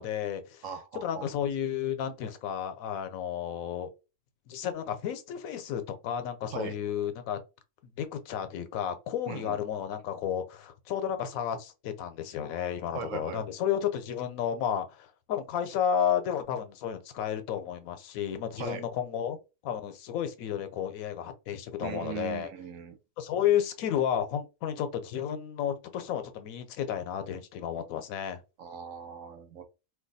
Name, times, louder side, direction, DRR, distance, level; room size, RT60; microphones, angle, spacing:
voice 1, 0.0-0.6 1.0-3.9 4.5-7.4 8.0-19.4 19.6-22.5 23.2-28.4, left 9 dB, 90° left, 1.0 m, -32 dB
voice 2, 0.6-1.3 6.5-6.8 9.3-9.6 12.9-13.4 18.6-18.9 21.8-23.0 28.6-29.6, right 8 dB, 75° right, 1.0 m, -39 dB
2.5 x 2.3 x 3.9 m
omnidirectional pair, 1.4 m